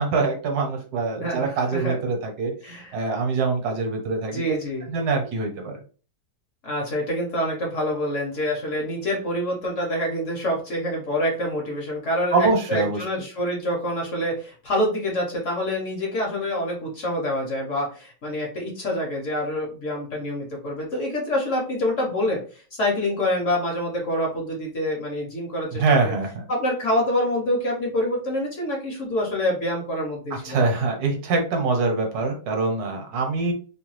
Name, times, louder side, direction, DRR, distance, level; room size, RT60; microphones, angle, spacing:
voice 1, 0.0-4.4 4.9-5.8 12.3-13.0 25.8-26.4 30.4-33.5, right 4 dB, 70° right, 3 dB, 1.3 m, -24 dB
voice 2, 1.2-1.9 2.6-2.9 4.3-4.9 6.6-26.2 26.5-30.7, left 1 dB, 55° left, -1 dB, 1.0 m, -26 dB
2.8 x 2.2 x 3.1 m, 0.38 s
omnidirectional pair, 1.8 m